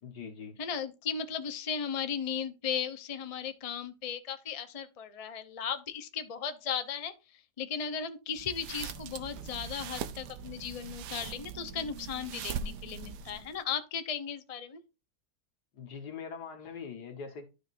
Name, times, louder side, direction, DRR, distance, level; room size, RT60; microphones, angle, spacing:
voice 1, 0.0-0.6 15.7-17.4, left 6 dB, 75° left, 2.0 m, -42 dB
voice 2, 0.6-7.1 7.6-14.8, left 7 dB, 30° left, 0.7 m, -36 dB
sound 1, 8.3-13.6, right 7 dB, 90° right, 1.3 m, -41 dB
12.5 x 5.1 x 2.6 m
omnidirectional pair, 1.7 m